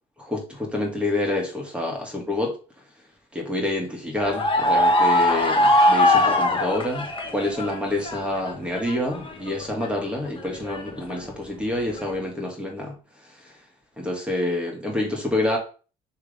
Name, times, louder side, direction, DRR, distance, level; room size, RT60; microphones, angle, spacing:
voice 1, 0.2-2.6 3.3-13.6 14.0-15.6, left 1 dB, 5° right, 2.0 m, -28 dB
sound 1, 4.2-7.8 8.0-9.9 10.2-11.1 11.9-12.2, left 1 dB, 30° left, 1.4 m, -21 dB
6.3 x 3.4 x 5.3 m
cardioid pair, 110°, 17 cm